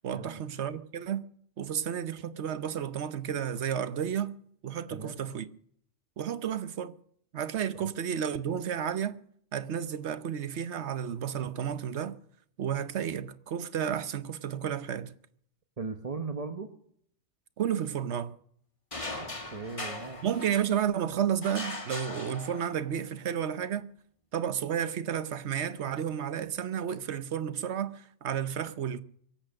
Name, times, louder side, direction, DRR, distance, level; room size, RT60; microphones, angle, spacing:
voice 1, 0.0-1.2 1.6-4.3 4.6-5.5 6.2-6.9 7.3-9.2 9.5-12.2 12.6-15.1 17.6-18.3 20.2-23.9 24.3-29.0, right 9 dB, 65° right, 1.1 m, -32 dB
voice 2, 15.8-16.7 19.1-20.3, right 4 dB, 30° right, 0.9 m, -38 dB
sound 1, 18.9-20.9 21.4-23.0, left 2 dB, 25° left, 1.7 m, -39 dB
23.0 x 8.3 x 6.4 m
omnidirectional pair, 1.3 m